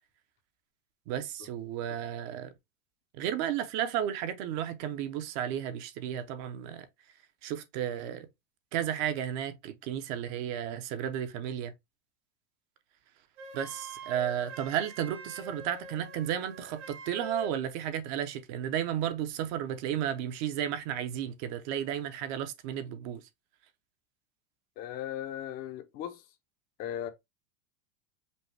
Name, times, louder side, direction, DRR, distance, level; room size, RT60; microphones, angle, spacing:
voice 1, 1.1-2.5 3.1-6.9 7.4-8.3 8.7-11.7 13.5-23.2, right 10 dB, 40° right, 0.6 m, -33 dB
Wind instrument woodwind instrument, 13.4-17.6, right 3 dB, 75° right, 1.4 m, -44 dB
voice 2, 24.8-26.2 26.8-27.1, left 11 dB, 25° left, 0.5 m, -37 dB
5.2 x 2.1 x 3.1 m
supercardioid pair, 155°, 36 cm